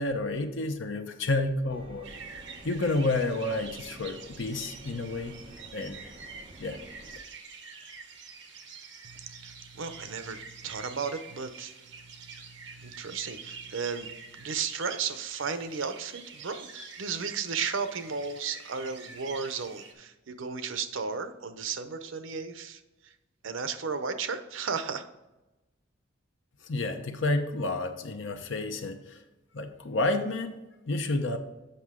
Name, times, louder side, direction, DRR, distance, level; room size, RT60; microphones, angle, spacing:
voice 1, 0.0-2.1 2.6-5.4 5.7-6.0 6.6-6.8 26.7-29.2 29.5-30.6 30.9-31.4, left 2 dB, 70° left, 7 dB, 0.8 m, -30 dB
sound 1, 1.7-7.2, right 1 dB, 30° right, 0.9 m, -50 dB
sound 2, 2.0-19.9, right 5 dB, 65° right, 1.1 m, -46 dB
voice 2, 9.0-23.1 23.4-25.1, right 5 dB, 85° right, 10 dB, 0.7 m, -35 dB
7.8 x 5.7 x 3.6 m, 1.0 s
head